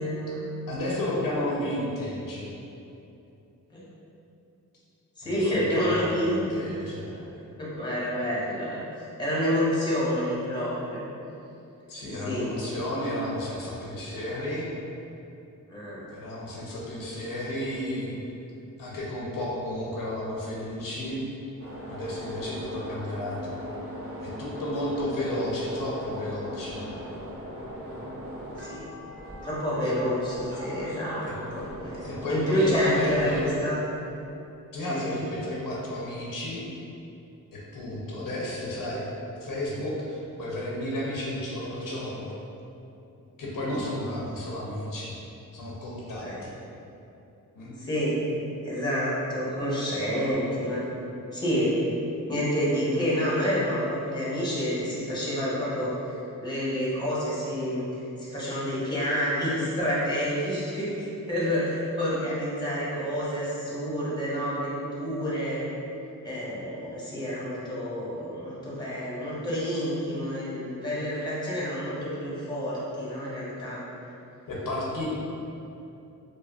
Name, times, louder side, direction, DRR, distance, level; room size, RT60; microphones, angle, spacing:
voice 1, 0.0-0.5 3.7-3.9 5.2-6.6 7.6-8.8 9.2-11.1 12.2-12.5 15.7-16.0 28.6-28.9 29.4-32.0 32.3-33.8 34.9-35.1 43.6-43.8 46.2-46.4 47.8-48.2 48.6-50.8 51.3-51.8 52.3-56.1 56.4-57.8 58.2-65.6 66.2-73.8, equal, 15° left, -8 dB, 1.0 m, -28 dB
voice 2, 0.7-2.6 5.2-7.3 11.9-14.7 16.1-18.2 18.8-21.2 21.9-23.6 24.2-26.9 29.8-29.9 31.2-31.3 32.0-33.5 34.7-36.6 37.5-39.1 39.4-42.3 43.4-45.1 45.5-46.5 47.5-47.8 74.5-75.1, left 1 dB, 75° left, -5 dB, 0.7 m, -32 dB
sound 1, 21.6-33.5, equal, 45° right, 1.0 m, -39 dB
4.8 x 2.1 x 2.4 m, 2.8 s
wide cardioid pair, 105°, 34 cm